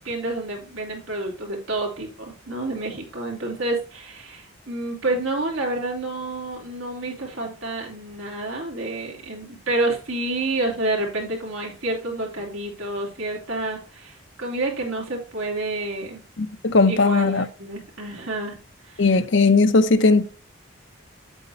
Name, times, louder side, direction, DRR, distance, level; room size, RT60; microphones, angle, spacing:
voice 1, 0.0-16.2 16.9-18.6 18.8-19.2, right 2 dB, 85° right, 3.0 m, -29 dB
voice 2, 16.4-17.4 19.0-20.2, left 3 dB, 65° left, 0.7 m, -18 dB
8.1 x 8.0 x 2.8 m
head